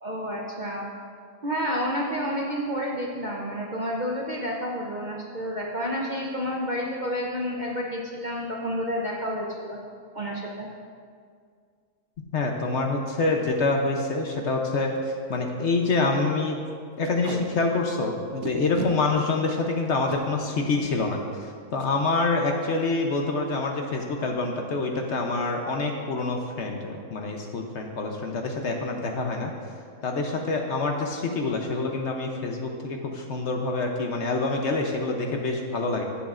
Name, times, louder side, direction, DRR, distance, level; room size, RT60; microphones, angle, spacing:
voice 1, 0.0-0.9 1.4-9.8 10.1-10.7, equal, 45° right, -2 dB, 0.6 m, -30 dB
voice 2, 12.3-16.6 17.0-21.2 21.7-29.5 30.0-36.0, left 3 dB, 55° left, 2 dB, 0.9 m, -26 dB
Packing tape duct tape, 13.4-13.6 14.0-14.1 14.3-14.5 15.0-15.1 15.3-15.5 15.8-16.0 17.0-17.4 18.4-18.9 19.9-20.2 21.7-21.9 22.3-22.5 22.7-23.1, right 5 dB, 75° right, 1.2 m, -35 dB
15.0 x 7.2 x 2.5 m, 2.1 s
omnidirectional pair, 1.6 m